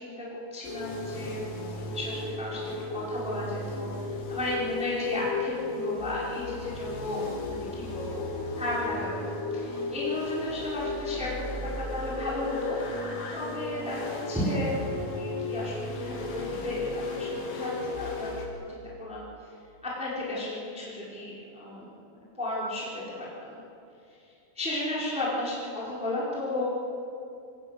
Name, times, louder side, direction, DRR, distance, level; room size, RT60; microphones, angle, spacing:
voice 1, 0.0-8.3 8.5-11.3 11.6-13.0 13.3-14.8 15.1-19.3 19.8-23.6 24.1-24.2 24.5-26.6, left 1 dB, ahead, -6 dB, 4.4 m, -34 dB
sound 1, 0.6-18.5, left 2 dB, 70° left, 5.3 m, -35 dB
25.0 x 18.0 x 8.3 m, 2.7 s
omnidirectional pair, 5.9 m